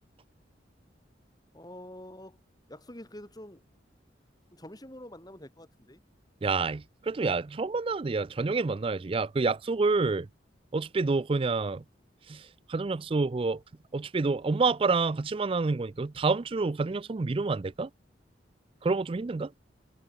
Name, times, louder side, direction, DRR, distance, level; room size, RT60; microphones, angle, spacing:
voice 1, 1.5-2.4 2.7-3.6 4.5-6.0, left 1 dB, 20° left, 5.4 m, -46 dB
voice 2, 6.4-10.3 10.7-11.8 12.3-13.6 13.9-17.9 18.8-19.5, right 3 dB, 30° right, 0.4 m, -28 dB
head